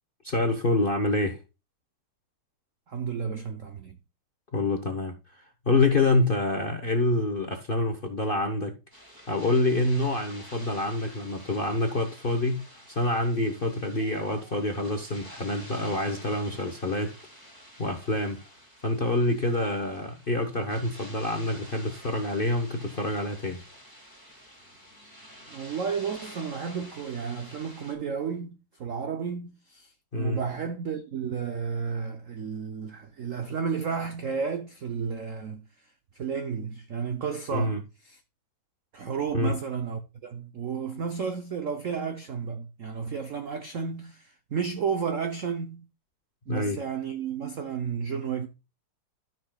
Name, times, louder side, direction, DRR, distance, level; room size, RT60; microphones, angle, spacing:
voice 1, 0.2-1.4 4.5-8.7 9.3-17.2 17.8-18.4 18.8-23.6 30.1-30.4 37.5-37.8 39.3-39.5 46.5-46.8, left 2 dB, 40° left, 0.8 m, -27 dB
voice 2, 2.9-4.0 25.5-35.6 36.2-37.8 38.1-38.2 38.9-45.9 46.5-48.5, right 6 dB, 70° right, 0.7 m, -32 dB
sound 1, 8.9-27.9, equal, 10° right, 1.9 m, -49 dB
13.5 x 6.0 x 2.3 m
omnidirectional pair, 2.4 m